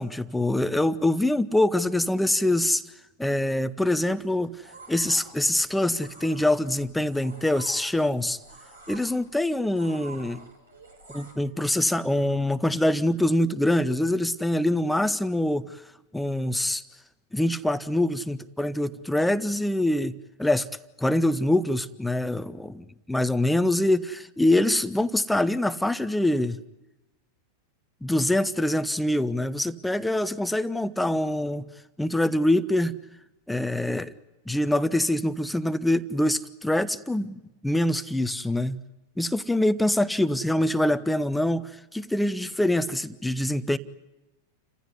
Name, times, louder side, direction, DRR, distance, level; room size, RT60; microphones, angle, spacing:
voice 1, 0.0-2.8 3.2-4.5 4.9-8.4 8.9-10.4 11.1-15.8 16.1-16.8 17.3-20.1 20.4-20.7 21.0-26.6 28.0-31.6 32.0-32.9 33.5-34.1 34.5-38.8 39.2-43.8, left 1 dB, 5° left, 13 dB, 0.9 m, -24 dB
sound 1, 4.1-11.3, right 3 dB, 75° right, 6.5 m, -48 dB
29.5 x 15.5 x 9.8 m, 1.0 s
figure-of-eight pair, 90°, 0 cm